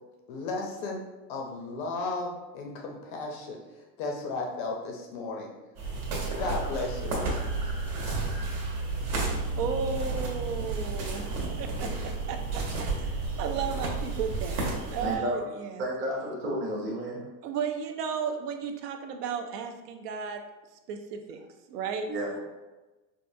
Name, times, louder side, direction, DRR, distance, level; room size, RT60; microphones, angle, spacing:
voice 1, 0.3-1.0 1.3-5.5 6.4-7.4, left 3 dB, 35° left, 1 dB, 0.4 m, -34 dB
sound 1, 5.8-15.2, right 3 dB, 70° right, 1.2 m, -31 dB
voice 2, 9.5-11.2 11.6-14.6 14.9-15.8 17.4-20.4 20.9-21.4 21.7-22.1, right 6 dB, 85° right, 6 dB, 0.7 m, -34 dB
voice 3, 15.0-15.4 15.8-17.2 22.1-22.4, equal, 25° right, -4 dB, 0.6 m, -31 dB
4.6 x 2.4 x 2.6 m, 1.1 s
supercardioid pair, 170°, 46 cm